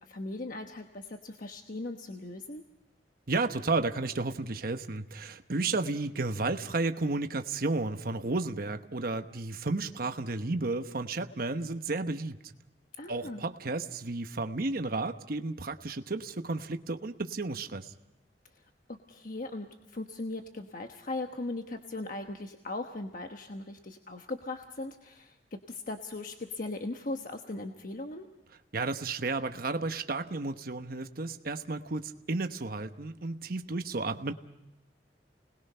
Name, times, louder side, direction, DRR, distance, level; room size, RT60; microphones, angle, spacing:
voice 1, 0.1-2.6 13.0-13.4 18.9-25.4 25.7-28.3, left 2 dB, 50° left, 4 dB, 1.2 m, -39 dB
voice 2, 3.3-12.4 13.1-17.9 28.7-34.3, right 3 dB, 55° right, 7 dB, 1.1 m, -32 dB
30.0 x 20.0 x 5.6 m, 0.91 s
head